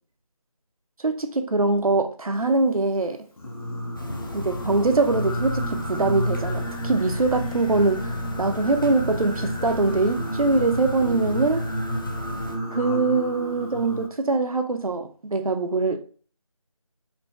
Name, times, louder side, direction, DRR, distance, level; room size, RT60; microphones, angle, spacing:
voice 1, 1.0-3.2 4.3-11.7 12.7-16.0, right 3 dB, 90° right, 0.6 m, -23 dB
Singing, 3.4-14.1, equal, 85° left, 0.8 m, -31 dB
sound 1, 4.0-12.6, left 1 dB, 40° left, 0.4 m, -34 dB
3.9 x 2.7 x 2.2 m
figure-of-eight pair, 165°, 18 cm